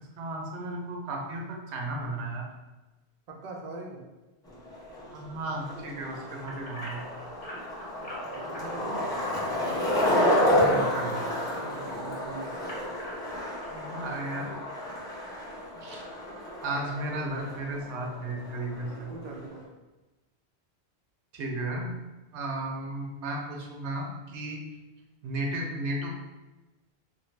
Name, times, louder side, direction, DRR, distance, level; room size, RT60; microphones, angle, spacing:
voice 1, 0.2-2.5 5.1-7.0 10.5-11.2 13.7-14.5 15.8-16.0 16.6-19.1 21.3-21.9 22.3-24.6 25.2-26.1, right 2 dB, 90° right, 1 dB, 0.9 m, -34 dB
voice 2, 3.3-4.0 8.0-9.2 11.5-12.8 15.7-15.8 18.7-19.6, right 3 dB, 55° right, 0 dB, 0.5 m, -42 dB
Skateboard, 4.5-19.6, left 1 dB, 5° left, 0.4 m, -30 dB
sound 1, 6.5-11.9 12.4-13.8 14.3-14.4 14.9-15.0, equal, 75° left, 1.2 m, -44 dB
2.6 x 2.1 x 3.1 m, 1.1 s
omnidirectional pair, 1.1 m